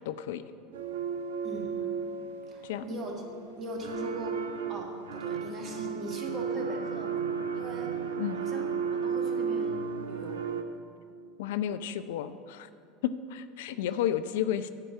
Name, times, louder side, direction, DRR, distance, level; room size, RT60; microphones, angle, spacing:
voice 1, 0.1-0.4 2.6-2.8 8.2-8.4 11.4-12.7 13.0-14.7, left 10 dB, 65° left, 12 dB, 0.3 m, -32 dB
sound 1, 0.7-10.6, right 6 dB, 75° right, 0.5 m, -34 dB
voice 2, 1.4-1.8 2.5-3.1 3.6-4.4 4.7-7.2 7.5-7.9 8.4-10.5 13.7-13.8, right 1 dB, 40° right, 1 dB, 1.9 m, -40 dB
10.5 x 4.6 x 7.8 m, 2.5 s
figure-of-eight pair, 75°, 0 cm